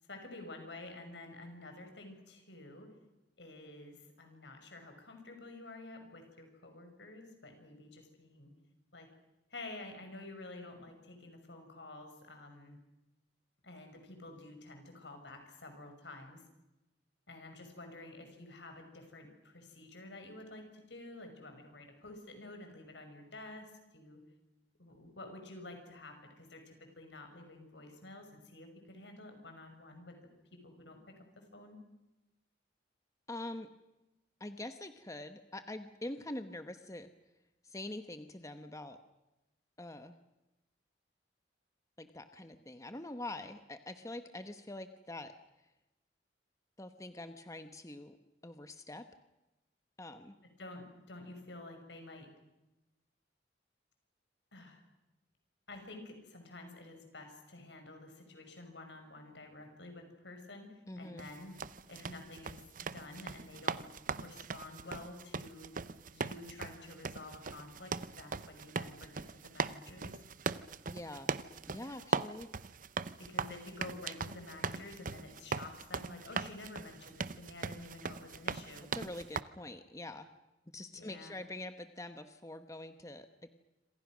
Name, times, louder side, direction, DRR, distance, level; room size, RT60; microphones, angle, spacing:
voice 1, 0.1-2.9 3.4-8.5 8.9-9.1 9.5-12.8 13.6-16.4 17.3-24.2 24.8-30.2 30.5-31.8 50.6-52.3 54.5-54.8 55.7-61.6 61.9-63.9 64.2-65.7 66.1-70.2 73.2-78.9 80.9-81.4, left 2 dB, 75° left, 5 dB, 6.2 m, -50 dB
voice 2, 33.3-33.7 34.4-37.1 37.6-39.0 39.8-40.2 42.0-45.3 46.8-48.2 48.4-49.1 50.0-50.3 60.9-61.3 70.9-71.3 71.7-72.5 78.9-80.3 80.7-83.5, left 1 dB, 20° left, 9 dB, 1.1 m, -44 dB
sound 1, 61.2-79.4, right 5 dB, 50° right, 0.8 m, -40 dB
27.5 x 26.5 x 6.3 m, 0.97 s
head